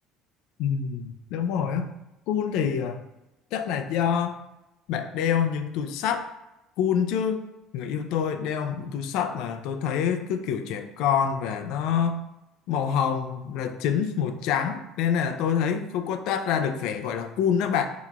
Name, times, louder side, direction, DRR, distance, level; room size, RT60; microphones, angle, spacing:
voice 1, 0.6-1.9 2.3-3.0 3.5-4.4 4.9-6.3 6.8-7.4 7.7-12.2 12.7-17.9, left 8 dB, 65° left, 7 dB, 0.4 m, -26 dB
5.5 x 2.9 x 2.4 m, 0.96 s
cardioid pair, 155°, 0 cm